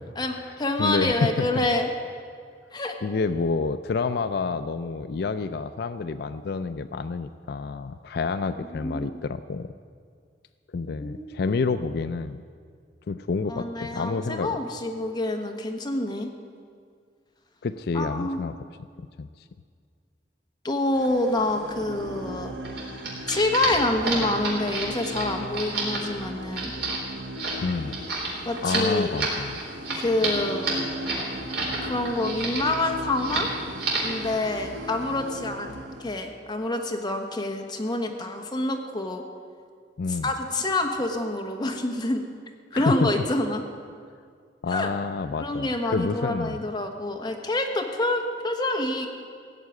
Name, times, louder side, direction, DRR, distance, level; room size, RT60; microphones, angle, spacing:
voice 1, 0.2-1.9 2.7-2.9 8.6-9.2 11.0-11.6 13.5-16.3 17.9-18.5 20.6-22.5 23.3-26.7 28.4-29.1 29.9-30.8 31.8-33.5 34.0-35.7 36.0-39.2 40.1-42.2 42.7-43.6 44.7-44.9 45.4-49.1, left 2 dB, 25° left, 3 dB, 1.2 m, -27 dB
voice 2, 0.8-1.6 3.0-9.7 10.7-12.4 13.1-14.6 17.6-18.6 19.2-19.3 27.6-28.0 28.6-29.6 40.0-40.3 42.7-43.1 44.6-46.6, left 4 dB, 60° left, 11 dB, 0.4 m, -28 dB
sound 1, 20.9-36.1, equal, 80° right, 1.2 m, -38 dB
sound 2, 22.6-31.8 32.0-32.8 33.1-33.5 33.8-34.2, right 3 dB, 65° right, 4.0 m, -30 dB
16.0 x 7.5 x 9.4 m, 2.1 s
head